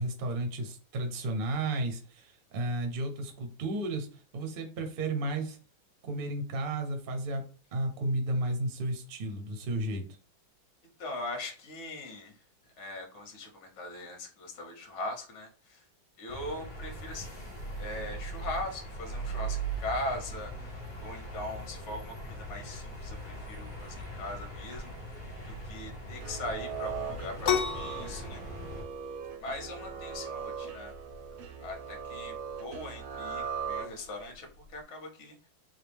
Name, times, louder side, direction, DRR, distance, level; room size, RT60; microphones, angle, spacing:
voice 1, 0.0-4.1 4.3-5.6 6.0-7.4 7.7-10.0, right 1 dB, 50° right, 5 dB, 0.6 m, -33 dB
voice 2, 11.0-12.3 12.8-15.8 16.2-17.5 17.8-28.4 29.4-30.9 31.6-35.5, left 2 dB, 45° left, 2 dB, 1.1 m, -40 dB
sound 1, 16.3-28.8, right 2 dB, 20° left, 0.7 m, -40 dB
sound 2, 26.1-34.3, right 6 dB, 80° right, 0.7 m, -40 dB
sound 3, 27.4-34.8, left 8 dB, 65° left, 0.9 m, -37 dB
4.0 x 2.4 x 3.4 m, 0.37 s
omnidirectional pair, 2.1 m